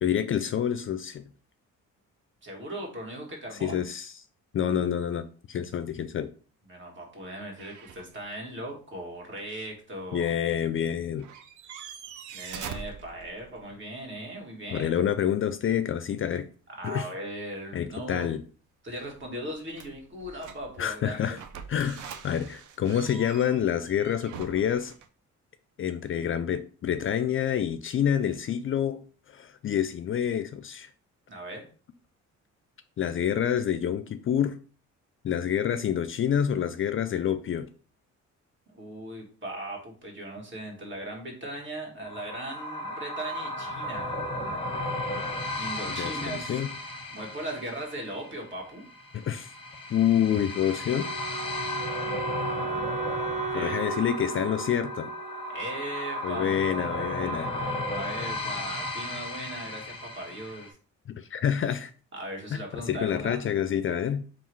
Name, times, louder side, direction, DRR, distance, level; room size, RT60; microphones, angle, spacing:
voice 1, 0.0-1.2 3.6-4.1 4.5-6.3 10.1-11.3 14.7-16.5 16.8-17.1 17.7-18.4 20.8-21.4 21.7-24.9 25.8-29.0 29.3-30.9 33.0-34.6 35.2-37.7 45.9-46.7 49.1-49.5 49.9-51.1 53.5-55.1 56.2-57.5 61.1-61.9 62.5-64.2, left 9 dB, 45° left, 0.4 m, -27 dB
voice 2, 2.4-3.8 6.7-10.3 12.3-14.9 16.8-18.3 18.8-21.4 31.3-31.6 38.7-44.2 45.5-46.6 47.1-48.8 53.5-53.8 55.5-60.8 62.1-63.4, right 1 dB, 40° right, 1.7 m, -38 dB
sound 1, 7.6-8.4 8.7-8.8 10.9-11.0 11.2-13.7 18.9-20.9 21.3-25.1, right 7 dB, 75° right, 0.6 m, -44 dB
sound 2, 42.0-60.7, left 1 dB, 20° left, 1.0 m, -34 dB
Wind instrument woodwind instrument, 50.9-56.0, right 6 dB, 25° right, 0.6 m, -36 dB
3.6 x 2.4 x 4.6 m
cardioid pair, 90°, 30 cm